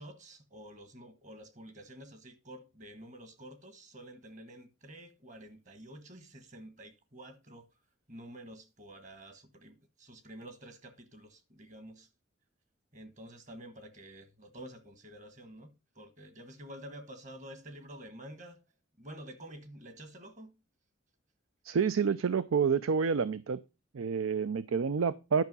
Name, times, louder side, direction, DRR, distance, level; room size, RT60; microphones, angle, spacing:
voice 1, 0.0-7.7 8.1-12.1 12.9-18.6 19.0-20.5, right 1 dB, 35° right, 1.3 m, -49 dB
voice 2, 21.6-23.6 23.9-25.4, right 6 dB, 90° right, 0.5 m, -28 dB
10.5 x 5.6 x 5.4 m
head